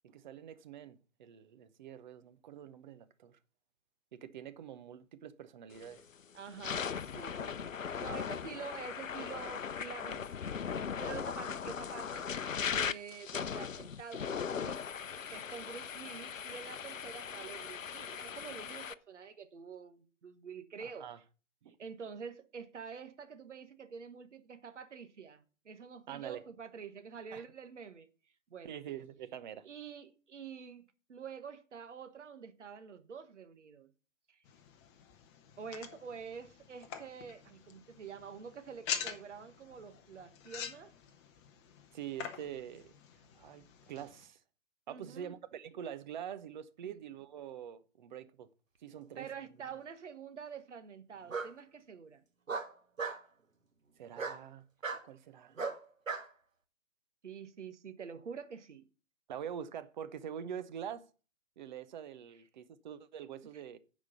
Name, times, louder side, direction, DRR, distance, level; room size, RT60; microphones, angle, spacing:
voice 1, 0.0-3.4 4.1-6.0 20.8-21.2 21.6-21.8 26.1-26.4 27.3-27.4 28.6-29.7 41.9-42.9 43.3-44.4 44.9-48.5 48.8-49.3 54.0-54.7 55.0-55.5 59.3-61.0 61.6-63.8, right 9 dB, 35° right, 0.8 m, -45 dB
sound 1, 5.8-6.0 6.5-18.9, left 7 dB, 80° left, 0.7 m, -39 dB
voice 2, 6.3-10.3 11.0-14.8 15.3-21.1 21.8-28.1 28.5-28.8 29.6-33.9 34.3-34.4 35.6-40.9 44.9-45.3 46.8-47.0 49.2-52.2 57.2-58.9 63.5-63.6, right 6 dB, 65° right, 1.4 m, -47 dB
sound 2, 34.4-44.2, left 8 dB, 20° left, 0.9 m, -46 dB
Bark, 49.1-49.8 51.3-51.5 52.5-53.2 54.2-54.4 54.8-55.0 55.6-56.3, right 4 dB, 80° right, 1.4 m, -37 dB
9.6 x 5.1 x 6.9 m
figure-of-eight pair, 125°, 39 cm